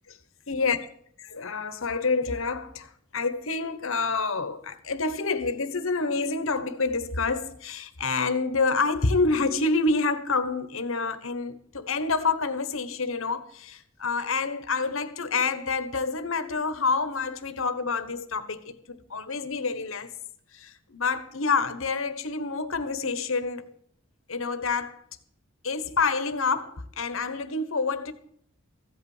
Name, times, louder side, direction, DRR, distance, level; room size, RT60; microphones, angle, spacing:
voice 1, 0.5-0.8 1.3-20.1 20.5-23.7 24.3-25.0 25.6-28.1, left 4 dB, 75° left, 1.3 m, -28 dB
15.0 x 8.5 x 7.2 m
head